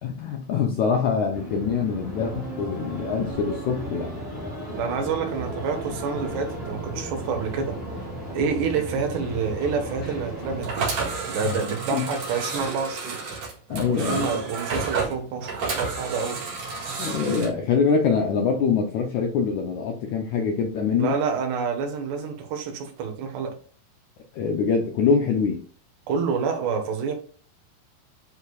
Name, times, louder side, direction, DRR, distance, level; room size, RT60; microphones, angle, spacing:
voice 1, 0.0-4.2 11.4-11.6 11.9-12.0 13.7-14.5 17.0-21.1 24.3-25.6, left 5 dB, 85° left, 2 dB, 1.7 m, -24 dB
sound 1, 1.3-10.7, right 1 dB, 20° left, 1.5 m, -34 dB
voice 2, 4.7-7.8 8.3-10.9 11.3-13.2 13.9-16.4 21.0-23.5 26.1-27.1, right 5 dB, 85° right, 4 dB, 3.5 m, -28 dB
sound 2, 10.6-17.5, right 4 dB, 50° right, 2.6 m, -30 dB
10.5 x 4.8 x 2.4 m, 0.41 s
omnidirectional pair, 4.6 m